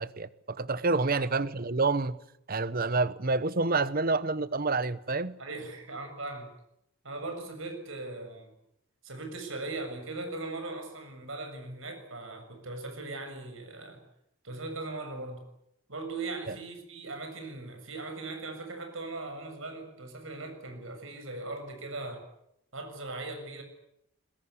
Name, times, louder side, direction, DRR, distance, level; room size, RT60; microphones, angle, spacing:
voice 1, 0.0-2.2 2.5-5.4 16.5-16.6, right 3 dB, 45° right, 1.0 m, -28 dB
voice 2, 5.4-6.5 7.0-8.5 9.0-14.0 14.4-15.4 15.9-22.3 22.7-23.6, right 2 dB, 65° right, 7.1 m, -39 dB
22.5 x 21.0 x 9.8 m
head